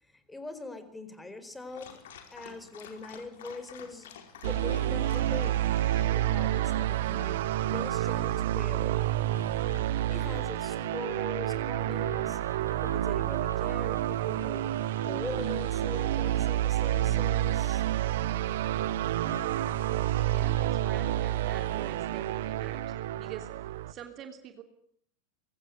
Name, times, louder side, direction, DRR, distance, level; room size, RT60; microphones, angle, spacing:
voice 1, 0.0-2.0 2.3-4.1 4.4-5.6 6.1-9.1 9.6-9.8 10.1-14.7 15.0-17.8, left 2 dB, 10° left, 11 dB, 4.6 m, -42 dB
Dog, 1.7-6.7, left 7 dB, 60° left, 5.0 m, -50 dB
sound 1, 4.3-6.1 6.9-20.7, left 2 dB, 80° left, 3.1 m, -53 dB
sound 2, 4.4-23.9, right 13 dB, 55° right, 1.0 m, -29 dB
voice 2, 20.2-22.9 23.2-23.5 23.9-24.6, right 9 dB, 35° right, 7 dB, 3.0 m, -45 dB
25.0 x 22.5 x 9.4 m, 0.68 s
figure-of-eight pair, 90°, 0 cm